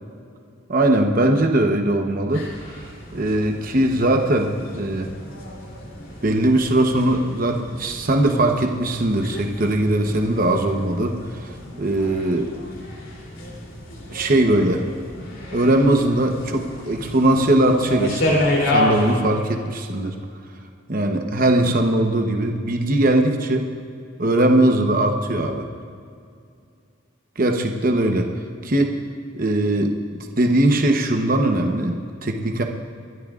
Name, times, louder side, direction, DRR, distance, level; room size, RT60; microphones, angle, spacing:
voice 1, 0.7-2.5 3.1-5.1 6.2-11.2 11.4-11.5 11.8-12.5 14.1-14.9 15.5-20.1 20.9-23.7 24.2-25.7 27.4-28.3 28.6-28.9 29.3-32.6, right 1 dB, 45° right, 3 dB, 0.9 m, -20 dB
sound 1, 2.3-19.2, left 1 dB, 75° left, 3.2 m, -30 dB
29.5 x 12.5 x 2.5 m, 2.4 s
head